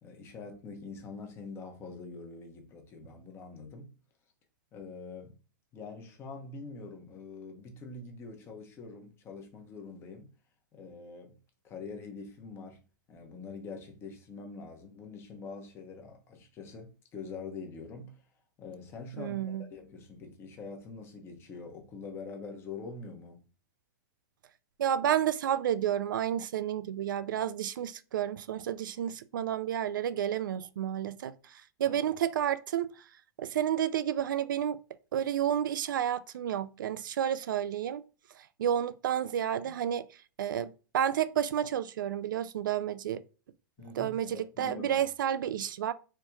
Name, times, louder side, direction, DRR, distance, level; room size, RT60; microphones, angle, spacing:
voice 1, 0.0-3.9 4.7-5.4 5.7-10.3 10.7-11.4 11.6-12.8 13.1-18.2 18.6-23.4 31.8-32.0 43.8-45.0, left 4 dB, 25° left, 0.9 m, -44 dB
voice 2, 19.2-19.6 24.8-32.9 33.4-34.8 35.1-38.0 38.4-40.0 40.4-43.2 43.9-45.9, right 10 dB, 85° right, 0.4 m, -31 dB
4.3 x 2.9 x 2.3 m
hypercardioid pair, 145°, 11 cm